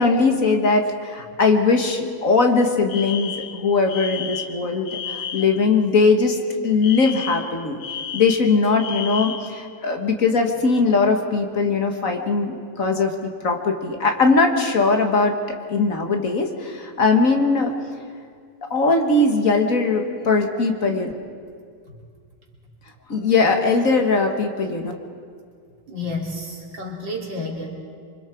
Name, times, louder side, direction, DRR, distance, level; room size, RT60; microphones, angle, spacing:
voice 1, 0.0-7.8 8.1-17.7 18.7-21.1 23.1-24.9, left 4 dB, 50° left, 3 dB, 1.9 m, -20 dB
Alarm, 2.9-5.6 6.8-9.6, left 7 dB, 90° left, 1.7 m, -32 dB
voice 2, 25.9-27.7, left 2 dB, 90° right, -2 dB, 3.9 m, -30 dB
26.0 x 25.0 x 4.6 m, 2.1 s
omnidirectional pair, 2.0 m